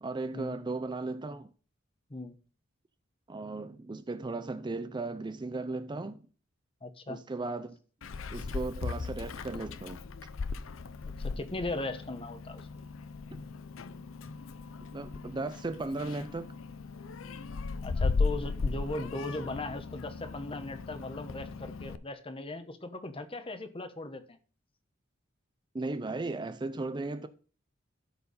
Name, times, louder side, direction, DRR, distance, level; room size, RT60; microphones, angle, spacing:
voice 1, 0.0-1.5 3.3-6.2 7.1-7.8 8.3-10.0 13.3-13.4 14.9-16.5 25.7-27.3, right 3 dB, 20° right, 0.4 m, -36 dB
voice 2, 6.8-7.2 11.2-12.6 17.8-24.4, left 2 dB, 25° left, 1.0 m, -38 dB
Meow, 8.0-22.0, left 4 dB, 85° left, 0.6 m, -37 dB
12.5 x 4.6 x 5.3 m
head